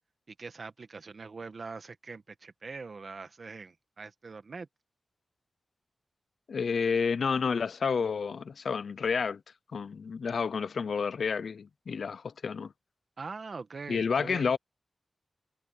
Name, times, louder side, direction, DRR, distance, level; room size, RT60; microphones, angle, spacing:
voice 1, 0.4-4.7 13.2-14.5, right 4 dB, 55° right, 1.4 m, -43 dB
voice 2, 6.5-9.4 9.7-12.7 13.9-14.6, left 5 dB, 80° left, 0.5 m, -30 dB
wide cardioid pair, 105°, 0 cm